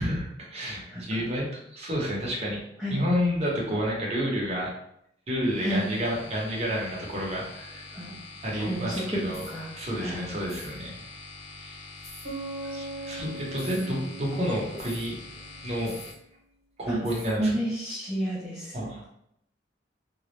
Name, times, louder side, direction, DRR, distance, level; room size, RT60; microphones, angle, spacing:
voice 1, 0.0-2.6 2.9-4.7 5.3-7.8 8.4-9.4 9.8-11.0 11.6-11.8 12.7-15.2 15.6-15.9 16.8-17.5 18.7-19.1, equal, 35° right, -3 dB, 0.7 m, -30 dB
voice 2, 0.9-1.3 2.8-3.0 5.6-5.9 7.9-8.1 8.6-9.7 10.0-10.3 13.8-14.2 16.9-17.0 17.4-18.9, right 1 dB, 5° right, -8 dB, 0.5 m, -31 dB
sound 1, 5.4-16.1, left 3 dB, 70° left, 0.7 m, -45 dB
sound 2, 9.3-9.6 10.4-10.7 12.0-12.3 13.5-13.9 14.8-15.1 15.8-16.2 17.0-17.4, left 1 dB, 40° left, 0.8 m, -46 dB
Bass guitar, 12.2-15.9, right 2 dB, 80° right, 0.8 m, -40 dB
2.3 x 2.0 x 3.0 m, 0.74 s
head